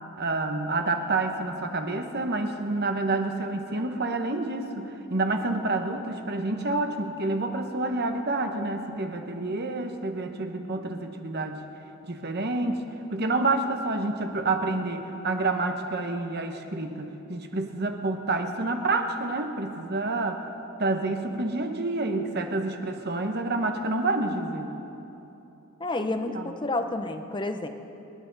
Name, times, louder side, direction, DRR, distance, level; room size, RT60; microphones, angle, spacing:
voice 1, 0.2-11.6 12.1-12.8 13.1-20.4 20.8-24.7 26.3-26.5, right 2 dB, 45° right, 5 dB, 1.0 m, -28 dB
voice 2, 25.8-27.7, left 2 dB, 20° left, 7 dB, 0.7 m, -30 dB
27.5 x 11.0 x 4.0 m, 3.0 s
head